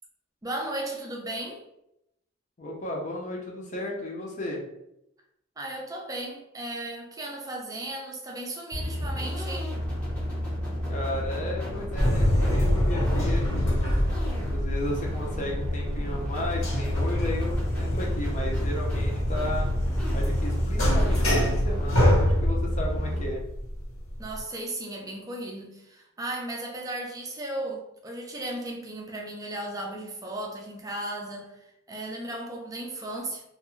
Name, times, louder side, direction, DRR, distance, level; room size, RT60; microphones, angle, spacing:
voice 1, 0.4-1.6 5.6-9.7 24.2-33.4, right 1 dB, 15° right, 0 dB, 0.4 m, -35 dB
voice 2, 2.6-4.6 10.9-14.0 14.5-19.7 20.1-23.4, left 1 dB, 35° left, -2 dB, 0.6 m, -34 dB
sound 1, 8.7-23.2, left 1 dB, 5° left, 0.8 m, -31 dB
sound 2, 12.0-24.4, equal, 80° left, 1.2 m, -26 dB
2.5 x 2.3 x 3.0 m, 0.83 s
head